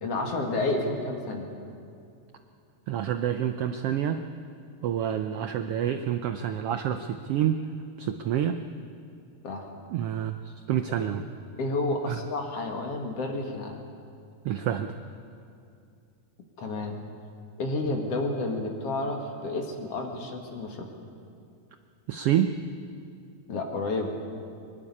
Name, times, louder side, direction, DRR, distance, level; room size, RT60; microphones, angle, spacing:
voice 1, 0.0-1.5 9.4-9.7 11.6-13.8 16.6-17.0 17.6-20.9 23.5-24.1, left 2 dB, 55° left, 2 dB, 2.7 m, -30 dB
voice 2, 2.9-4.2 4.8-7.6 8.0-8.6 9.9-11.2 12.1-12.2 14.4-14.9 22.1-22.6, right 10 dB, 75° right, 8 dB, 1.4 m, -28 dB
23.5 x 11.5 x 9.8 m, 2.5 s
omnidirectional pair, 3.4 m